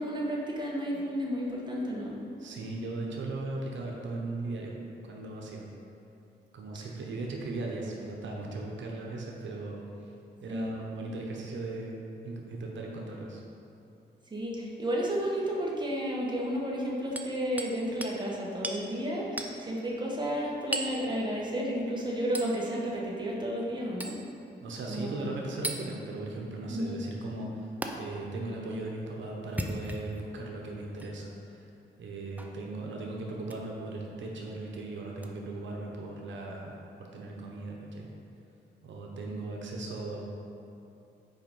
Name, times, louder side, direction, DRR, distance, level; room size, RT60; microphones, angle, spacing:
voice 1, 0.0-2.2 10.5-10.7 14.3-24.2 24.9-25.3 26.7-27.0, equal, 25° right, -4 dB, 1.4 m, -32 dB
voice 2, 2.4-4.7 5.0-5.6 6.5-9.8 10.4-12.0 12.2-13.4 24.6-31.7 32.0-38.1 38.8-40.2, right 2 dB, 90° right, -1 dB, 0.9 m, -38 dB
Hammer, 17.2-17.8 18.0-18.2 18.6-18.8 19.4-19.6 20.7-21.0 22.4-22.5 24.0-24.2 25.6-25.8 27.8-27.9 29.4-30.2 31.0-31.1 32.4-32.6 33.4-33.6 35.2-35.3, right 1 dB, 10° right, 0.6 m, -35 dB
5.8 x 4.9 x 5.4 m, 2.7 s
cardioid pair, 85°, 19 cm